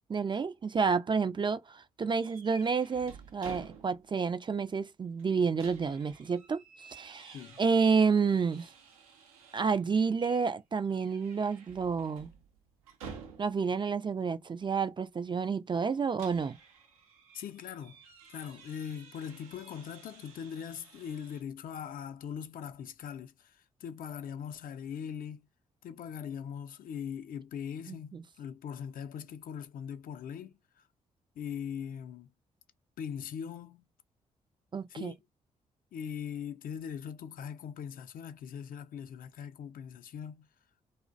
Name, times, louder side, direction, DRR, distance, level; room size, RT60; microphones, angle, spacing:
voice 1, 0.1-6.6 6.9-8.7 9.5-12.3 13.4-16.6 27.9-28.2 34.7-35.1, right 5 dB, 25° right, 0.3 m, -30 dB
sound 1, 2.1-4.2 4.6-4.7 5.2-9.8 10.2-10.5 10.8-13.8 15.8-21.4, right 6 dB, 90° right, 0.5 m, -52 dB
voice 2, 17.3-18.0 18.3-25.5 25.8-30.9 31.4-32.3 33.0-33.9 34.9-35.2 35.9-40.5, left 8 dB, 55° left, 0.5 m, -41 dB
2.4 x 2.0 x 2.5 m
hypercardioid pair, 40°, 17 cm